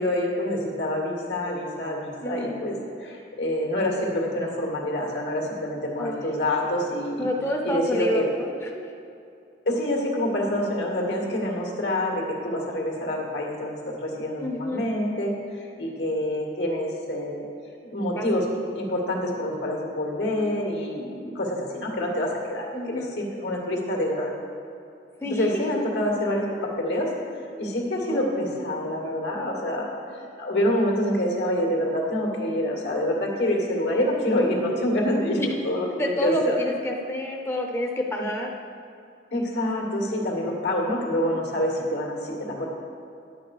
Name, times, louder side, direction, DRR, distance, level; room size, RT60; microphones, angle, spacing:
voice 1, 0.0-7.3 7.6-8.3 9.7-17.5 17.8-18.5 18.7-24.3 25.2-27.1 27.4-36.6 39.3-42.7, left 1 dB, 80° left, -1 dB, 2.1 m, -27 dB
voice 2, 2.2-2.6 6.0-6.2 7.2-8.9 14.4-14.9 18.2-18.4 22.7-23.1 25.2-25.5 28.1-28.2 35.4-35.5 35.9-38.5, left 1 dB, 15° left, 1 dB, 0.6 m, -29 dB
10.5 x 8.1 x 4.9 m, 2.6 s
head